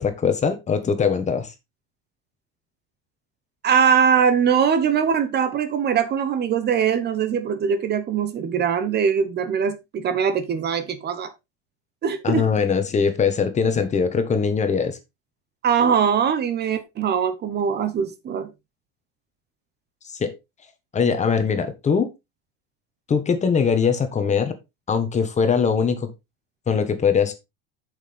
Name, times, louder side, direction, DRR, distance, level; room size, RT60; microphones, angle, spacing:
voice 1, 0.0-1.5 12.2-15.0 20.2-20.3 20.9-22.1 23.1-24.5 24.9-26.1 26.7-27.3, left 6 dB, 25° left, 1.4 m, -21 dB
voice 2, 3.6-11.3 12.0-12.4 15.6-18.5, right 7 dB, 35° right, 1.1 m, -21 dB
8.2 x 6.7 x 3.5 m
cardioid pair, 140°, 30 cm